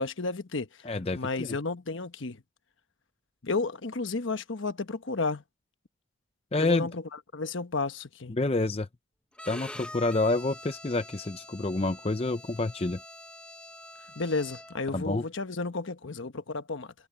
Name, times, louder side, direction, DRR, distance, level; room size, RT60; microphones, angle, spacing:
voice 1, 0.0-0.7 1.1-2.4 3.4-5.4 6.6-7.0 7.3-8.3 14.1-16.9, left 3 dB, 70° left, 1.1 m, -32 dB
voice 2, 0.8-1.6 6.5-6.9 8.3-8.9 9.5-13.0 14.9-15.3, left 2 dB, 30° left, 0.6 m, -28 dB
Bowed string instrument, 9.4-14.9, left 1 dB, 5° left, 0.9 m, -45 dB
head